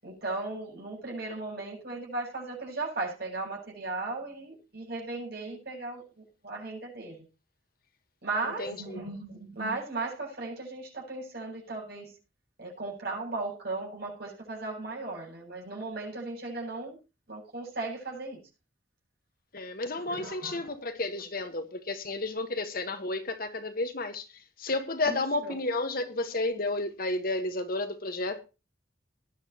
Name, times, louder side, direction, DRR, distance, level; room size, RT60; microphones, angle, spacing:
voice 1, 0.0-7.2 8.2-12.1 12.6-17.0 17.3-18.4 20.1-20.7 25.1-25.5, right 3 dB, 50° right, 7.9 m, -36 dB
voice 2, 8.5-9.0 19.5-28.4, left 2 dB, 45° left, 1.5 m, -32 dB
19.5 x 11.0 x 3.0 m
head